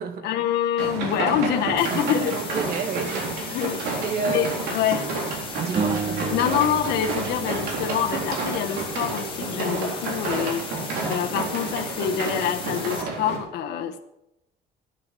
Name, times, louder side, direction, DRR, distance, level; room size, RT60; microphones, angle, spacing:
voice 1, 0.2-2.4 3.5-3.8 4.2-5.1 6.3-14.0, left 9 dB, 75° left, 5 dB, 1.2 m, -26 dB
sound 1, 0.8-13.4, right 3 dB, 85° right, 3.8 m, -30 dB
sound 2, 1.8-13.0, left 6 dB, 30° left, 2.7 m, -37 dB
voice 2, 2.1-4.7 5.5-6.2, right 5 dB, 65° right, 7 dB, 1.9 m, -31 dB
sound 3, 5.8-9.0, right 5 dB, 35° right, 1.3 m, -32 dB
12.0 x 10.5 x 6.2 m, 0.87 s
cardioid pair, 110°, 17 cm